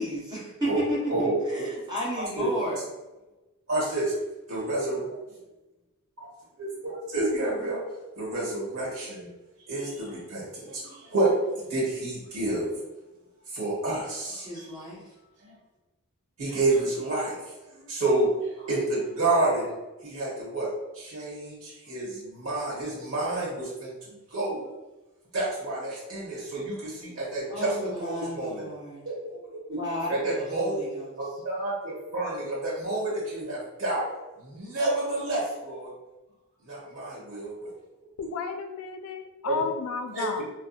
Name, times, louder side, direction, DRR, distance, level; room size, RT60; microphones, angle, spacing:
voice 1, 0.0-2.8 14.4-15.0 27.5-29.0 29.7-31.2, equal, 20° right, -7 dB, 0.8 m, -33 dB
voice 2, 1.1-1.4 1.8-2.5 3.7-4.1 4.5-5.1 6.2-6.3 6.6-7.8 8.2-9.3 9.7-12.8 13.5-14.8 15.4-15.5 16.4-19.7 20.0-20.7 20.9-23.9 24.3-24.6 25.3-28.6 29.0-29.4 29.7-29.8 30.1-30.7 31.2-34.0 34.4-35.9 36.6-37.7 39.4-39.6 40.1-40.4, right 2 dB, 65° right, -6 dB, 1.3 m, -29 dB
voice 3, 38.2-40.4, left 5 dB, 80° left, 6 dB, 0.3 m, -33 dB
2.7 x 2.2 x 2.3 m, 1.1 s
head